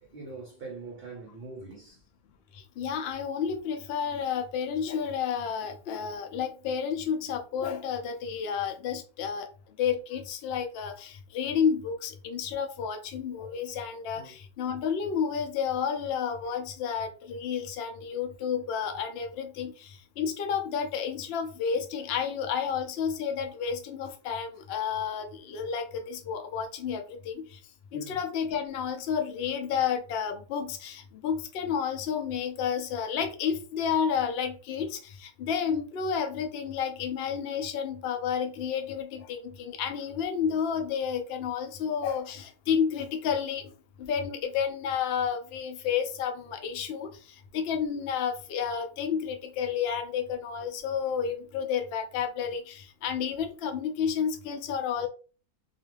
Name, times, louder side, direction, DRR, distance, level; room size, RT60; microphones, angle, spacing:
voice 1, 0.0-2.0 14.1-14.4 27.9-28.2, right 3 dB, 55° right, 0.7 m, -43 dB
voice 2, 2.5-9.5 9.8-27.6 27.9-43.7 44.0-47.1 47.5-55.1, left 7 dB, 75° left, 0.5 m, -31 dB
2.5 x 2.4 x 3.1 m
omnidirectional pair, 1.6 m